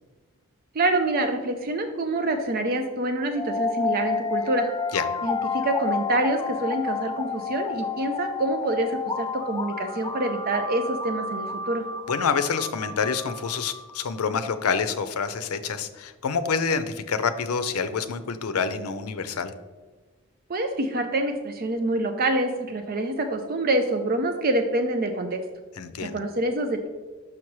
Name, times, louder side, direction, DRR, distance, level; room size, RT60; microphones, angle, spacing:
voice 1, 0.7-4.7 5.2-11.8 20.5-25.4 26.0-26.9, right 2 dB, 40° right, 6 dB, 0.4 m, -26 dB
sound 1, 3.3-14.3, left 4 dB, 15° left, 0.4 m, -30 dB
voice 2, 12.1-19.5 25.8-26.2, left 5 dB, 85° left, 10 dB, 0.5 m, -27 dB
6.1 x 5.9 x 3.1 m, 1.3 s
head